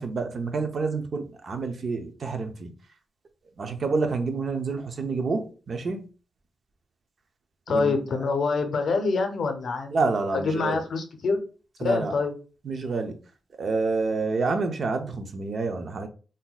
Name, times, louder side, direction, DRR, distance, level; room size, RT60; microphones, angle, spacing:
voice 1, 0.0-2.7 3.6-6.1 7.7-7.9 9.9-10.8 11.8-12.2 12.6-13.1 13.6-16.1, right 4 dB, 45° right, 0.4 m, -28 dB
voice 2, 7.7-9.9 10.3-11.4 11.8-12.3, left 4 dB, 60° left, 0.6 m, -25 dB
2.6 x 2.2 x 3.8 m
wide cardioid pair, 160°, 0 cm